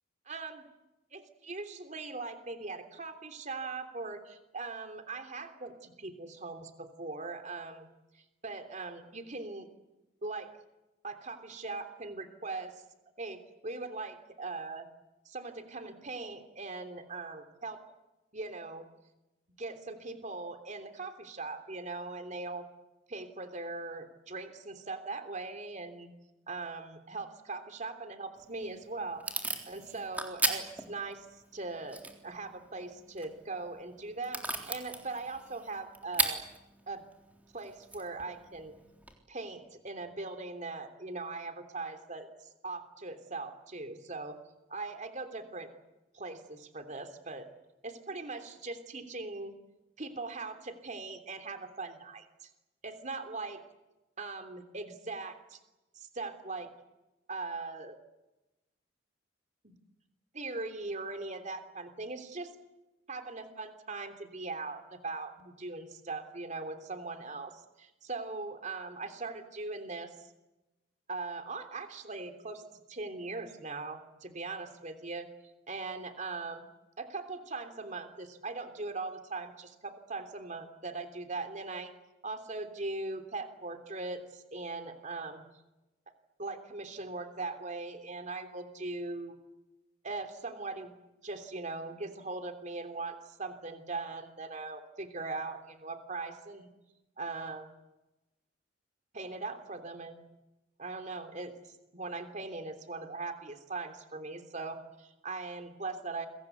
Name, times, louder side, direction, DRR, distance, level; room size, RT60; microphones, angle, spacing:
voice 1, 0.3-0.6 1.1-7.9 8.1-9.7 10.2-10.5 11.0-12.7 13.2-14.9 15.2-17.8 18.3-18.9 19.6-22.7 23.1-26.1 26.5-29.2 29.7-31.3 31.5-36.4 36.9-37.0 37.5-38.7 39.3-42.3 42.6-44.4 44.7-45.7 46.1-47.5 47.8-49.5 50.0-52.5 52.8-53.6 54.2-55.6 55.9-56.7 57.3-58.0 59.6-59.8 60.3-62.5 63.1-70.1 71.1-72.6 72.9-75.3 75.7-76.6 77.0-81.9 82.2-85.4 86.4-89.3 90.0-90.9 91.2-96.7 97.2-97.7 99.1-100.3 100.8-101.5 101.9-106.3, right 3 dB, 35° right, 7 dB, 3.2 m, -40 dB
Packing tape duct tape / Tearing, 28.3-39.1, right 2 dB, 10° right, 3.7 m, -39 dB
29.5 x 23.0 x 8.2 m, 1.0 s
head